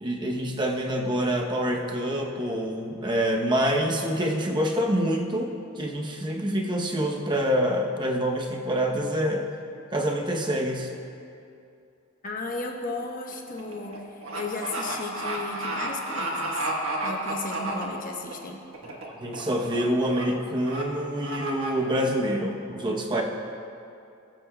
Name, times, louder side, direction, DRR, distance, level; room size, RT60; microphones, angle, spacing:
voice 1, 0.0-9.5 9.9-10.9 19.0-23.2, equal, 20° right, 1 dB, 0.8 m, -26 dB
voice 2, 12.2-16.7 17.0-18.6, left 3 dB, 40° left, 1 dB, 1.0 m, -35 dB
sound 1, 12.2-12.5 12.8-18.3 18.7-19.1 19.3-19.8 20.1-20.2 20.6-20.8 21.2-21.7, right 2 dB, 65° right, 1.3 m, -32 dB
20.0 x 7.8 x 2.2 m, 2.6 s
head